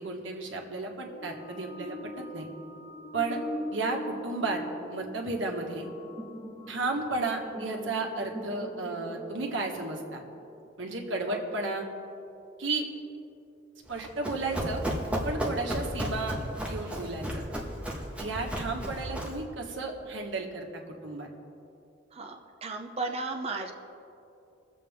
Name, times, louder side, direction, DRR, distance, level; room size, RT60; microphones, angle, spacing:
voice 1, 0.0-2.5 3.1-3.4 3.7-4.6 4.9-5.9 6.7-10.2 10.8-11.8 12.6-12.8 13.9-14.8 15.2-16.4 16.7-17.4 18.2-21.3, right 3 dB, 80° right, 1 dB, 1.6 m, -33 dB
sound 1, 1.1-10.4, left 1 dB, 20° left, 1.4 m, -41 dB
Run, 13.9-19.4, equal, 5° right, 1.5 m, -34 dB
voice 2, 22.1-23.7, right 3 dB, 30° right, 3 dB, 0.7 m, -35 dB
22.0 x 7.7 x 3.6 m, 2.8 s
head